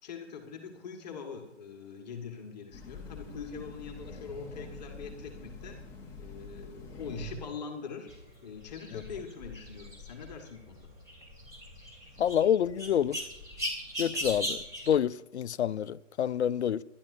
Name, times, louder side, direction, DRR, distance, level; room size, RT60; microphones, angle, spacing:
voice 1, 0.0-5.8 6.2-8.1 8.4-10.9, left 6 dB, 35° left, 1.7 m, -43 dB
Train, 2.7-7.6, left 1 dB, 5° left, 0.7 m, -45 dB
sound 1, 8.1-14.9, equal, 10° right, 3.0 m, -39 dB
voice 2, 12.2-13.2 14.0-14.6 14.9-16.8, left 9 dB, 60° left, 0.5 m, -27 dB
21.5 x 11.5 x 2.7 m
figure-of-eight pair, 145°, 37 cm